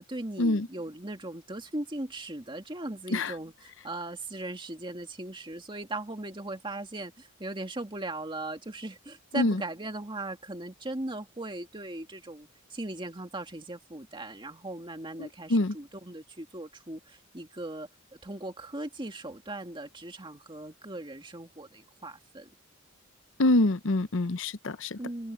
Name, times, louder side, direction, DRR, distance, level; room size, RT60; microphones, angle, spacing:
voice 1, 0.0-17.9 18.2-22.5 24.7-25.3, right 2 dB, 25° right, 2.2 m, -39 dB
voice 2, 15.2-15.7 23.4-25.0, left 2 dB, 65° left, 0.8 m, -25 dB
head